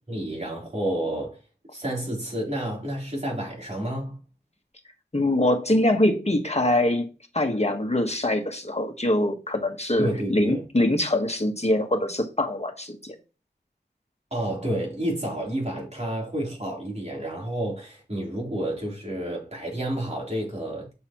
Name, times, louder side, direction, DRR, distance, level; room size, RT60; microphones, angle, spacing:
voice 1, 0.1-1.4 1.7-4.2 10.0-10.6 14.3-20.9, right 1 dB, 40° right, 3.7 m, -30 dB
voice 2, 5.1-7.1 7.3-13.1, left 1 dB, 35° left, 1.5 m, -23 dB
7.6 x 6.5 x 3.0 m
wide cardioid pair, 50°, 18 cm